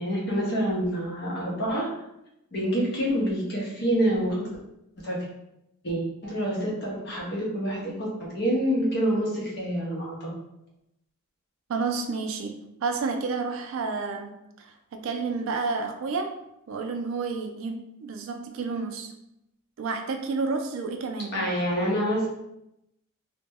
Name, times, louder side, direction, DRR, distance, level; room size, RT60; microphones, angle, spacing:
voice 1, 0.0-1.9 2.5-4.5 5.0-5.3 5.8-10.3 21.3-22.3, equal, 50° left, -4 dB, 0.7 m, -27 dB
voice 2, 11.7-16.4 16.7-19.1 19.8-21.5, right 4 dB, 65° right, 5 dB, 0.3 m, -30 dB
2.1 x 2.1 x 3.4 m, 0.85 s
head